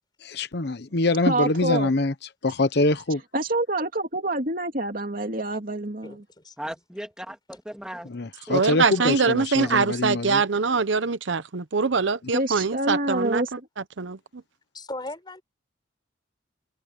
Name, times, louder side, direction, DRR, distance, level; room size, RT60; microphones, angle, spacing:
voice 1, 0.4-2.1 2.4-3.2 8.1-10.4, left 2 dB, 55° left, 0.9 m, -24 dB
voice 2, 1.3-1.9 3.3-6.2 12.3-13.5, right 1 dB, 45° right, 2.8 m, -26 dB
voice 3, 6.0-6.7 14.7-15.4, left 2 dB, 25° left, 5.9 m, -38 dB
voice 4, 6.6-8.1 8.5-9.2 9.6-9.9, equal, 5° right, 2.3 m, -38 dB
voice 5, 8.5-13.4 14.0-14.2, right 5 dB, 70° right, 0.8 m, -23 dB
head